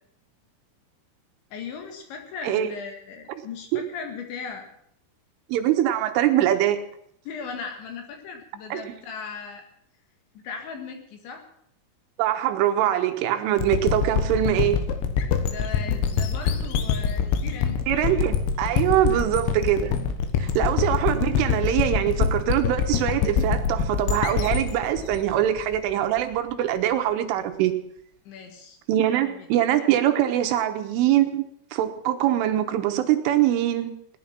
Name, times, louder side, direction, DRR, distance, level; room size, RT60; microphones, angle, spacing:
voice 1, 1.5-4.7 7.3-9.6 10.4-11.4 15.4-17.8 19.1-19.2 20.4-20.6 28.3-28.8 29.1-29.5, left 5 dB, 65° left, 4 dB, 3.9 m, -38 dB
voice 2, 2.4-2.7 3.7-3.8 5.5-6.8 8.7-8.8 12.2-14.8 17.9-20.0 20.4-27.7 28.9-31.4 31.7-33.9, right 12 dB, 80° right, 7 dB, 3.2 m, -23 dB
sound 1, 13.6-26.2, left 6 dB, 90° left, 4.0 m, -25 dB
18.0 x 11.0 x 5.9 m, 0.71 s
omnidirectional pair, 5.9 m